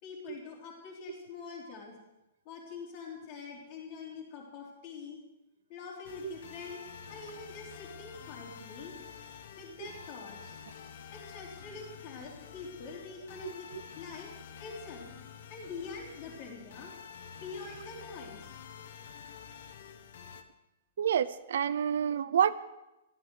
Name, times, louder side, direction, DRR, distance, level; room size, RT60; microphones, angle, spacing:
voice 1, 0.0-2.0 2.4-5.2 5.7-6.8 7.1-9.0 9.6-10.5 11.1-13.7 14.0-14.3 14.6-15.1 15.5-16.9 17.4-18.6, left 4 dB, 30° left, -1 dB, 4.0 m, -45 dB
sound 1, 6.0-20.4, left 7 dB, 45° left, 1.3 m, -49 dB
voice 2, 21.0-22.6, right 8 dB, 65° right, 15 dB, 0.6 m, -28 dB
15.0 x 13.0 x 6.5 m, 0.97 s
hypercardioid pair, 180°, 0 cm